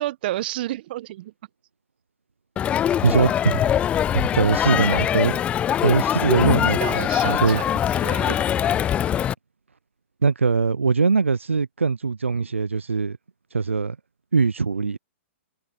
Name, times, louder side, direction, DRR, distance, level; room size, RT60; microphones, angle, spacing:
voice 1, 0.0-1.3 6.8-8.5, right 15 dB, 50° right, 1.3 m, -31 dB
Crowd, 2.6-9.3, left 10 dB, 20° left, 0.4 m, -22 dB
voice 2, 3.0-3.7 4.1-5.4 5.8-7.6 10.2-13.2 13.5-14.0 14.3-15.0, right 4 dB, 90° right, 0.4 m, -21 dB
figure-of-eight pair, 120°, 7 cm